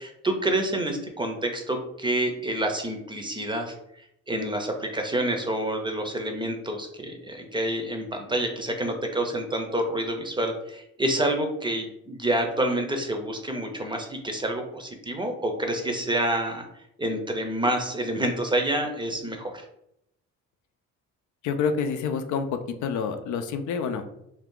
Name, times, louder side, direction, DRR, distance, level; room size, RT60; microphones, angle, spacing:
voice 1, 0.0-16.6 17.0-19.6, right 1 dB, 15° right, 4 dB, 0.6 m, -28 dB
voice 2, 21.4-24.0, left 6 dB, 75° left, 8 dB, 0.4 m, -28 dB
2.7 x 2.4 x 3.6 m, 0.79 s
cardioid pair, 90°, 30 cm